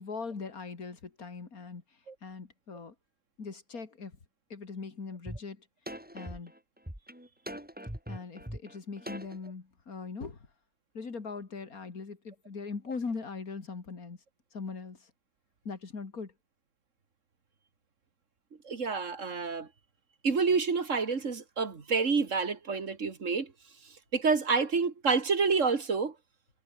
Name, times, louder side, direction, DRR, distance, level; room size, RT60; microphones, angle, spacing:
voice 1, 0.0-2.9 3.4-4.2 4.5-5.7 6.1-6.5 8.1-10.5 10.9-14.2 14.5-15.1 15.6-16.3, left 4 dB, 45° left, 3.0 m, -40 dB
sound 1, 5.3-5.4 5.9-9.5, equal, 5° right, 3.2 m, -41 dB
voice 2, 18.6-19.7 20.2-23.5 24.1-26.1, right 4 dB, 40° right, 2.1 m, -28 dB
omnidirectional pair, 2.1 m